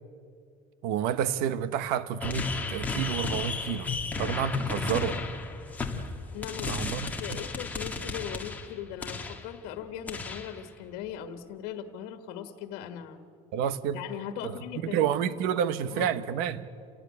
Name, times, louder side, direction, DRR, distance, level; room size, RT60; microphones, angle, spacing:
voice 1, 0.8-3.9 4.2-5.2 6.7-7.1 13.5-14.0 14.4-14.5 14.8-16.7, right 9 dB, 80° right, 1.1 m, -29 dB
sound 1, 2.2-9.5 10.1-10.6, left 4 dB, 10° left, 1.7 m, -34 dB
voice 2, 6.3-13.2 13.9-15.1 15.5-16.3, left 9 dB, 85° left, 1.5 m, -39 dB
28.5 x 17.0 x 9.7 m
cardioid pair, 170°, 15 cm